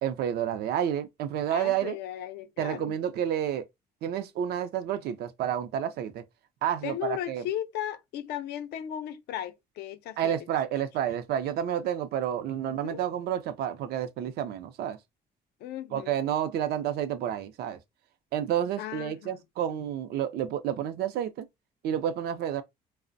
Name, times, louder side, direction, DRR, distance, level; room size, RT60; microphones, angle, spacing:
voice 1, 0.0-2.0 2.6-3.6 4.0-6.2 6.6-7.4 10.2-15.0 15.9-17.8 18.3-21.5 21.8-22.6, right 10 dB, 70° right, 0.5 m, -30 dB
voice 2, 1.5-2.9 6.8-10.3 12.7-13.0 15.6-16.2 18.8-19.4, left 11 dB, 75° left, 0.5 m, -36 dB
2.4 x 2.0 x 2.5 m
cardioid pair, 110°, 17 cm